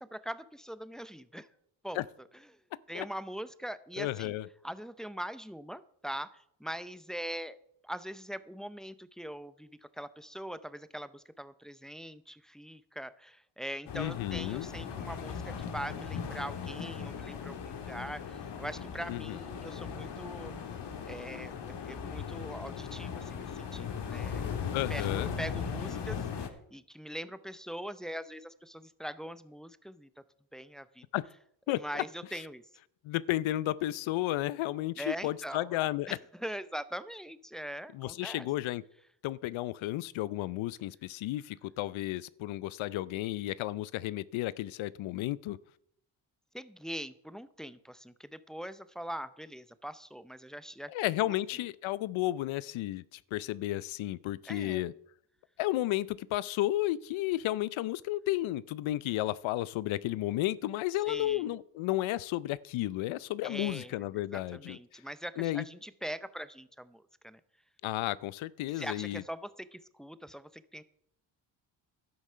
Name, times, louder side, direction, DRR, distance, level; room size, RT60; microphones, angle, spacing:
voice 1, 0.0-1.5 1.8-2.0 2.9-4.3 4.6-7.6 7.8-20.5 21.0-30.2 30.5-31.0 31.7-32.6 35.0-38.5 46.5-50.9 51.2-51.3 54.4-54.8 61.1-61.5 63.4-67.4 68.7-70.8, equal, ahead, 14 dB, 0.6 m, -42 dB
voice 2, 4.0-4.5 13.9-14.7 19.1-19.4 24.7-25.3 31.1-31.2 31.7-32.0 33.0-36.1 37.9-38.8 39.2-45.6 50.9-54.9 55.6-64.8 65.4-65.6 67.8-69.2, left 15 dB, 80° left, 20 dB, 0.6 m, -33 dB
sound 1, 13.9-26.5, left 7 dB, 60° left, 1.9 m, -38 dB
12.0 x 9.6 x 5.6 m, 0.71 s
cardioid pair, 90°, 46 cm